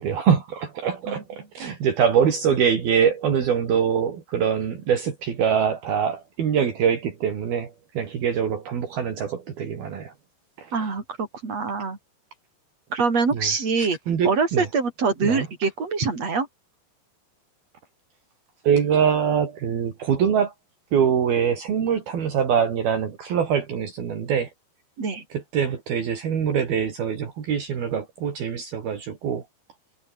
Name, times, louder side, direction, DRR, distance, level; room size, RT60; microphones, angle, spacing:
voice 1, 0.0-10.1 10.6-10.7 13.3-13.5 13.8-14.7 15.2-15.5 18.6-20.5 20.9-24.5 25.3-29.4, right 7 dB, 60° right, 5.0 m, -24 dB
voice 2, 10.7-12.0 12.9-14.0 14.2-16.5 25.0-25.2, right 4 dB, 40° right, 6.6 m, -24 dB
omnidirectional pair, 4.9 m